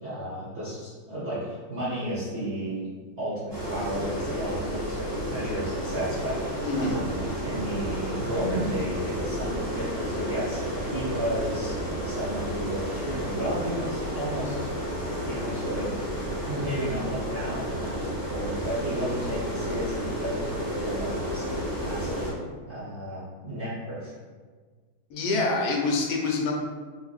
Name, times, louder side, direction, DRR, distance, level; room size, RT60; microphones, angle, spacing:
voice 1, 0.0-2.9 3.2-14.6 15.2-16.0 16.4-22.3 22.7-24.1, right 1 dB, 55° right, -10 dB, 0.7 m, -33 dB
sound 1, 3.5-22.3, equal, 15° right, 0.7 m, -31 dB
voice 2, 6.6-7.0 25.1-26.5, left 3 dB, 85° left, 0 dB, 1.4 m, -26 dB
4.3 x 2.6 x 2.4 m, 1.5 s
omnidirectional pair, 2.2 m